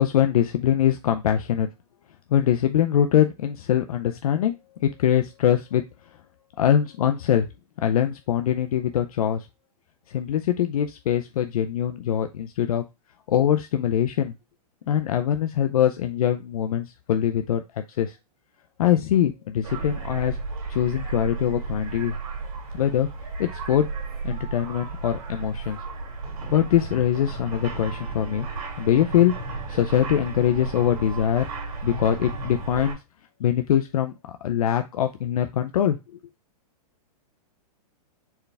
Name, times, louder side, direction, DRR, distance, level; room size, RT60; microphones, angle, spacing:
voice 1, 0.0-1.7 2.3-4.5 4.8-5.8 6.6-7.5 7.8-9.5 10.1-12.8 13.3-14.3 14.9-18.2 18.8-20.4 20.7-22.2 22.7-23.1 23.4-23.9 24.2-25.8 26.5-28.5 28.8-31.5 31.8-33.0 33.4-34.1 34.4-36.0, left 10 dB, 65° left, 7 dB, 0.5 m, -23 dB
sound 1, 19.6-32.9, right 3 dB, 60° right, 2.4 m, -34 dB
4.6 x 3.3 x 3.3 m, 0.25 s
hypercardioid pair, 175°, 20 cm